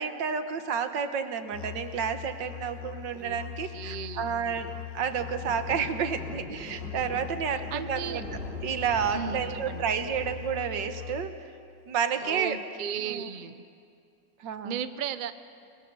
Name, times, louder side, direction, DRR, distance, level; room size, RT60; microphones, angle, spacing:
voice 1, 0.0-4.7 4.9-8.2 8.6-11.3 11.9-12.6 13.0-13.3 14.4-14.8, right 7 dB, 75° right, 9 dB, 1.9 m, -30 dB
Musical instrument, 1.5-11.5, left 15 dB, 75° left, 1.4 m, -41 dB
voice 2, 3.7-4.3 7.7-8.2 9.1-9.8 12.2-13.6 14.6-15.3, right 8 dB, 55° right, 12 dB, 0.5 m, -35 dB
sound 1, 4.5-10.4, right 1 dB, 30° right, 4.0 m, -44 dB
28.5 x 20.5 x 6.8 m, 2.3 s
omnidirectional pair, 2.0 m